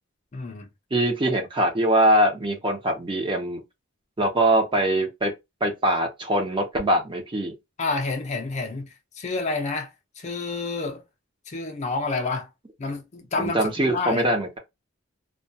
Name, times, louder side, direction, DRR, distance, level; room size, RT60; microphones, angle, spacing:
voice 1, 0.3-0.7 7.8-9.9 10.2-11.0 11.5-12.5 12.8-14.2, left 3 dB, 35° left, 0.5 m, -29 dB
voice 2, 0.9-3.6 4.2-5.3 5.6-7.5 13.4-14.6, right 1 dB, 25° right, 0.6 m, -22 dB
2.2 x 2.2 x 2.7 m
head